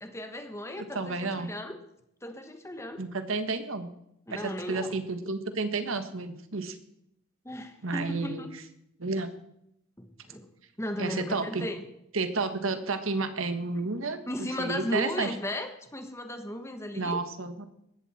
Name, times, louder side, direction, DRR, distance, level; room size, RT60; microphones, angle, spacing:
voice 1, 0.0-1.8 2.2-3.0 4.3-5.0 7.4-8.5 10.0-10.5 10.8-11.8 14.3-17.2, left 1 dB, 15° left, 6 dB, 1.4 m, -35 dB
voice 2, 0.8-1.5 3.0-3.9 4.3-6.8 7.8-8.5 9.0-9.3 11.0-11.7 12.1-15.3 16.9-17.6, right 3 dB, 75° right, 9 dB, 1.6 m, -31 dB
18.5 x 14.0 x 4.4 m, 0.80 s
head